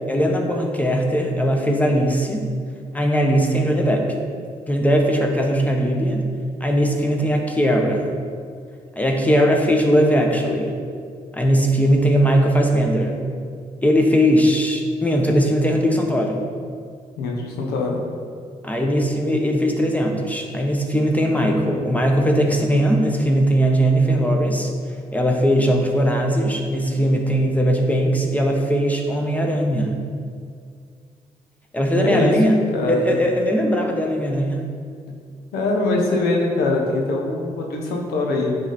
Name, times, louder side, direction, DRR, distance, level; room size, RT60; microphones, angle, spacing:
voice 1, 0.1-2.5 2.9-4.1 4.7-6.2 6.6-8.1 9.0-10.8 11.3-13.2 13.8-16.4 18.6-24.7 25.1-30.0 31.7-32.6 32.9-34.6, equal, 10° left, 1 dB, 1.2 m, -19 dB
voice 2, 17.2-18.0 31.9-32.3 32.7-33.2 35.5-38.6, left 2 dB, 85° left, 0 dB, 1.0 m, -22 dB
9.0 x 3.5 x 4.2 m, 2.1 s
supercardioid pair, 45°, 16 cm